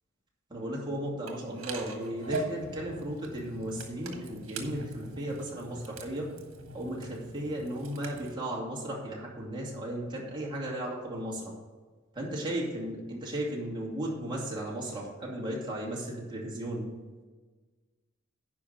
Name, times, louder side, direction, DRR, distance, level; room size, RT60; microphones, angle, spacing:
voice 1, 0.5-6.3 6.7-11.5 12.1-16.8, right 1 dB, 25° right, -3 dB, 2.5 m, -35 dB
sound 1, 1.3-8.3, right 2 dB, 80° right, 1.4 m, -41 dB
10.5 x 5.1 x 6.6 m, 1.3 s
head